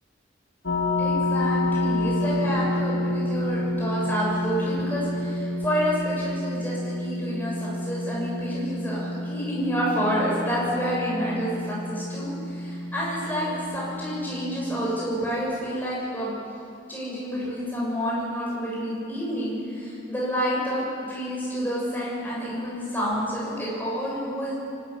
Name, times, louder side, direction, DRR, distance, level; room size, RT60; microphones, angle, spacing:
sound 1, 0.6-14.8, left 1 dB, 75° left, 2.2 m, -29 dB
voice 1, 1.0-16.3 16.9-24.5, equal, 10° left, -6 dB, 7.2 m, -29 dB
23.5 x 13.5 x 9.7 m, 2.7 s
head